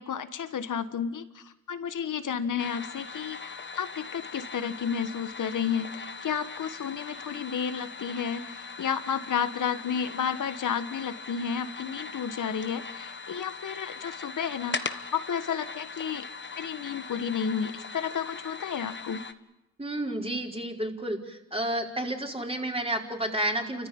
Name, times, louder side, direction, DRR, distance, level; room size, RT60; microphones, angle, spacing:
voice 1, 0.0-16.3 16.6-19.3, left 7 dB, 70° left, 11 dB, 1.5 m, -32 dB
sound 1, 2.6-19.3, left 4 dB, 35° left, 1.3 m, -40 dB
voice 2, 19.8-23.9, right 1 dB, 20° right, 1 dB, 4.8 m, -31 dB
29.5 x 14.5 x 8.8 m, 0.99 s
supercardioid pair, 45°, 32 cm